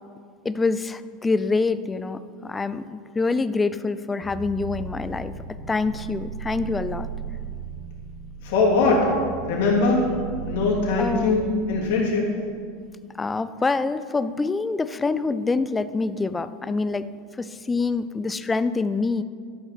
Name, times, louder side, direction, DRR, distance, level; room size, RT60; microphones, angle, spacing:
voice 1, 0.4-5.3 5.7-7.1 11.0-11.4 13.2-17.1 17.4-19.2, left 3 dB, 15° left, 13 dB, 0.3 m, -26 dB
sound 1, 4.2-11.5, right 6 dB, 65° right, 2.1 m, -36 dB
voice 2, 8.4-9.1 9.4-10.1 10.4-12.2, left 3 dB, 70° left, -3 dB, 2.9 m, -21 dB
12.0 x 5.4 x 5.9 m, 2.1 s
supercardioid pair, 140°, 0 cm